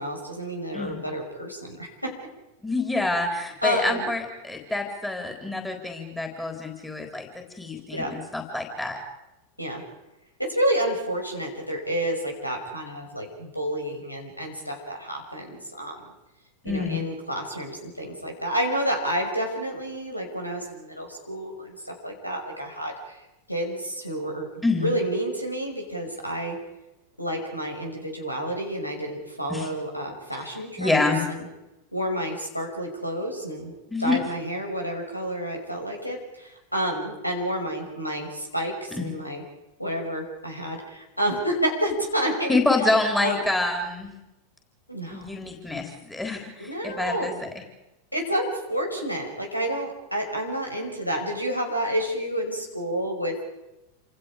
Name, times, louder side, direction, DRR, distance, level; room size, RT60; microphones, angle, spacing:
voice 1, 0.0-2.1 3.6-4.1 7.9-8.1 9.6-9.8 10.4-16.1 16.6-23.2 23.5-24.5 24.8-26.6 27.2-31.5 31.9-33.7 34.0-39.4 39.8-42.6 43.2-43.4 44.9-45.2 46.6-47.3 48.1-53.4, right 1 dB, 90° left, 3 dB, 5.8 m, -29 dB
voice 2, 2.6-9.0 16.6-17.0 24.6-24.9 29.5-29.7 30.3-30.4 30.8-31.3 33.9-34.2 38.9-39.1 42.5-44.2 45.1-47.5, left 2 dB, 5° left, 3 dB, 3.9 m, -27 dB
28.5 x 27.0 x 5.1 m, 0.95 s
figure-of-eight pair, 90°, 0 cm